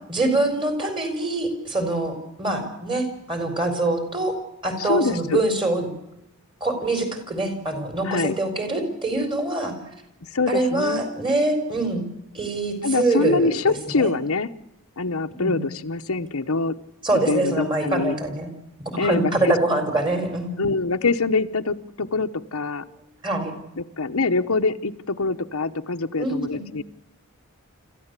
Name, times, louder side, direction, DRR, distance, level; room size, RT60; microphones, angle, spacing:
voice 1, 0.1-4.4 4.6-5.9 6.6-9.8 10.5-12.0 12.3-13.5 13.9-14.1 15.4-15.6 17.0-18.5 18.8-20.6 23.2-23.5 26.2-26.6, right 2 dB, 20° right, 7 dB, 4.5 m, -24 dB
voice 2, 4.8-5.4 8.0-8.3 10.3-11.0 12.8-14.5 15.0-16.8 17.3-18.2 19.0-19.5 20.6-22.9 23.8-26.8, left 3 dB, 75° left, 7 dB, 1.0 m, -24 dB
27.0 x 14.5 x 8.3 m, 0.86 s
head